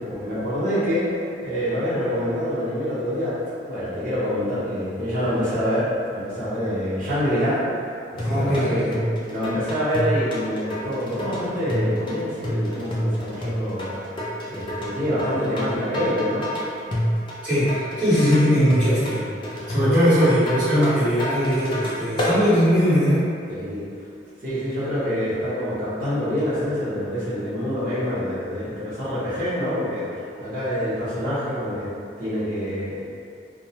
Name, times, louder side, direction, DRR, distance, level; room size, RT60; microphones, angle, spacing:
voice 1, 0.0-3.4 3.7-7.6 8.1-8.9 9.3-16.5 23.5-23.9 24.4-31.9 32.2-33.1, equal, 50° right, -12 dB, 1.0 m, -26 dB
sound 1, 8.2-22.4, equal, 30° left, 0.4 m, -28 dB
voice 2, 8.2-9.0 17.4-19.2 19.7-23.2, equal, 25° right, -18 dB, 1.3 m, -20 dB
2.5 x 2.0 x 2.8 m, 2.4 s
head